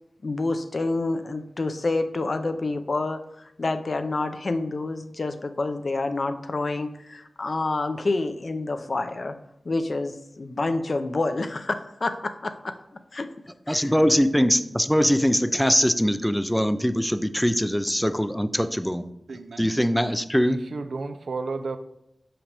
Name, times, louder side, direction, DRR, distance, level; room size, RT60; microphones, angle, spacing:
voice 1, 0.2-3.2 3.6-9.3 9.7-12.8 13.1-13.3 13.7-13.9, left 2 dB, 55° left, 9 dB, 0.5 m, -28 dB
voice 2, 13.7-19.1 19.6-20.6, equal, 5° left, 11 dB, 0.4 m, -22 dB
voice 3, 19.3-19.7 20.4-21.8, right 3 dB, 85° right, 9 dB, 0.4 m, -32 dB
5.8 x 5.3 x 3.4 m, 0.82 s
wide cardioid pair, 65°, 0 cm